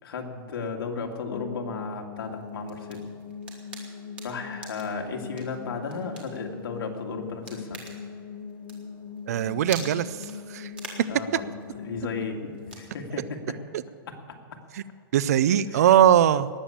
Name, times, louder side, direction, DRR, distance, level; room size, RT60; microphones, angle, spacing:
voice 1, 0.0-3.1 4.2-7.8 11.1-11.5 11.8-12.4 12.7-13.6 14.1-14.2 15.7-15.9, left 4 dB, 90° left, 1 dB, 2.2 m, -34 dB
sound 1, 1.3-14.2, left 6 dB, 35° left, 0.5 m, -41 dB
sound 2, 2.2-12.9, right 3 dB, 10° right, 1.4 m, -46 dB
voice 2, 9.3-10.7 13.7-13.8 14.7-14.8 15.1-16.5, right 10 dB, 45° right, 17 dB, 0.5 m, -21 dB
19.0 x 7.1 x 8.5 m, 2.1 s
hypercardioid pair, 180°, 12 cm